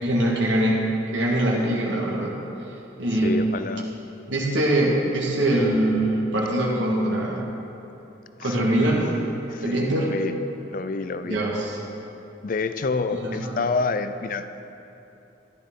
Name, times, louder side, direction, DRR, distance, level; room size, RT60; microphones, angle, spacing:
voice 1, 0.0-0.8 1.1-2.4 3.0-3.4 4.3-7.4 8.4-9.0 9.6-10.1 11.2-11.8 13.1-13.7, right 1 dB, 80° right, -4 dB, 1.7 m, -23 dB
voice 2, 3.2-3.9 8.4-8.8 9.5-10.4 10.7-11.4 12.4-14.6, left 4 dB, 45° left, 10 dB, 0.4 m, -28 dB
13.5 x 11.0 x 3.7 m, 3.0 s
head